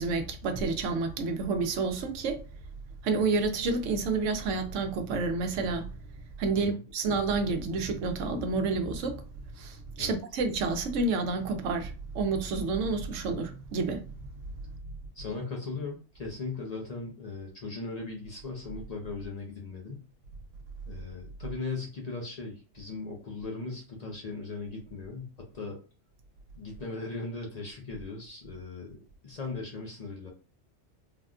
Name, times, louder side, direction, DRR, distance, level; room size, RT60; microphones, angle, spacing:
voice 1, 0.0-2.4 3.0-5.9 6.4-9.2 9.6-14.0, right 3 dB, 90° right, 1.0 m, -29 dB
voice 2, 15.1-20.0 20.9-25.8 26.6-30.3, left 3 dB, 45° left, 0.6 m, -38 dB
3.4 x 2.2 x 2.4 m
omnidirectional pair, 1.2 m